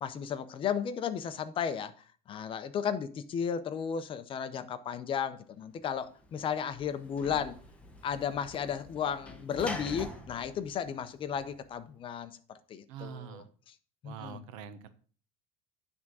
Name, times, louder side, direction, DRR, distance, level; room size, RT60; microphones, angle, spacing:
voice 1, 0.0-1.9 2.3-7.6 8.0-13.7 14.0-14.4, left 7 dB, 30° left, 0.6 m, -34 dB
Sliding door / Slam, 5.9-11.7, left 1 dB, 5° left, 1.0 m, -45 dB
voice 2, 12.9-13.5 14.0-14.9, right 7 dB, 85° right, 1.0 m, -44 dB
9.9 x 3.6 x 6.1 m
cardioid pair, 145°, 17 cm